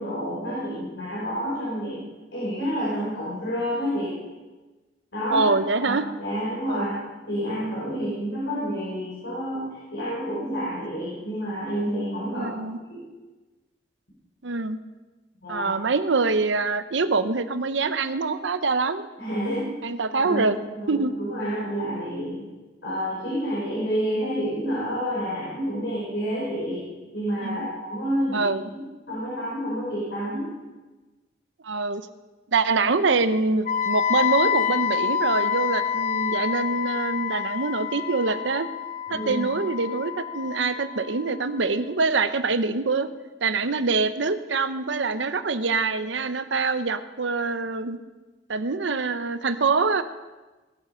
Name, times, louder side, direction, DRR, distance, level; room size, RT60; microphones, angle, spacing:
voice 1, 0.0-2.0 2.3-4.1 5.1-5.5 5.8-7.0 7.3-12.5 12.9-13.0 15.4-15.7 19.2-19.7 20.1-22.4 22.8-26.8 27.1-28.5 29.1-30.5 39.1-39.5, equal, 75° left, -7 dB, 5.0 m, -29 dB
voice 2, 5.3-6.0 6.7-6.9 12.3-12.8 14.4-14.8 15.5-19.1 19.8-20.6 20.9-21.1 27.4-27.7 28.3-28.7 31.6-32.0 32.5-38.7 39.1-43.1 43.4-48.0 48.5-50.0, right 4 dB, 85° right, 11 dB, 0.8 m, -25 dB
Wind instrument woodwind instrument, 33.7-41.6, left 8 dB, 45° left, 0.6 m, -27 dB
19.0 x 8.2 x 5.6 m, 1.2 s
head